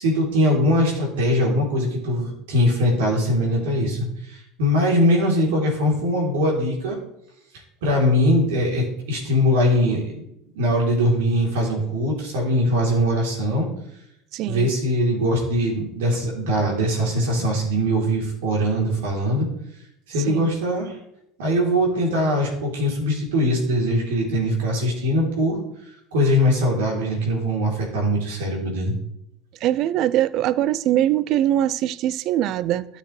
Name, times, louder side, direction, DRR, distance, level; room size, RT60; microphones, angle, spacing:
voice 1, 0.0-4.0 4.3-7.0 7.8-10.2 10.5-13.7 14.5-19.5 20.1-21.0 21.4-25.6 26.1-28.9, equal, 75° right, 3.3 m, -21 dB
voice 2, 14.3-14.7 20.3-20.5 29.6-32.9, right 12 dB, 55° right, 0.4 m, -22 dB
12.5 x 6.6 x 3.2 m
hypercardioid pair, 80°, 0 cm